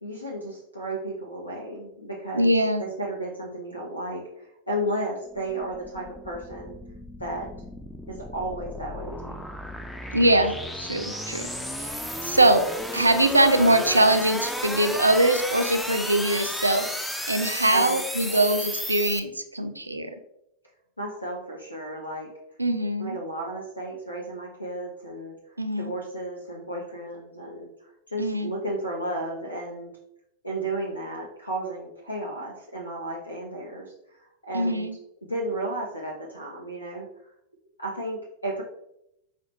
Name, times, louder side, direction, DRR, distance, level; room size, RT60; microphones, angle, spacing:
voice 1, 0.0-6.8 7.2-7.5 8.1-9.4 17.7-18.5 21.0-22.3 23.0-25.3 25.8-27.7 28.1-29.9 30.4-33.9 34.5-34.9 35.3-37.1 37.8-38.6, right 1 dB, 85° left, -2 dB, 0.6 m, -33 dB
voice 2, 2.3-2.8 10.1-11.5 12.2-12.7 12.9-16.9 17.3-20.1 22.6-23.2 25.6-25.9 28.2-28.5 34.5-35.0, right 1 dB, 85° right, 8 dB, 0.3 m, -22 dB
sound 1, 5.3-19.2, equal, 5° left, 0.3 m, -34 dB
5.6 x 2.1 x 2.9 m, 0.79 s
figure-of-eight pair, 90°, 0 cm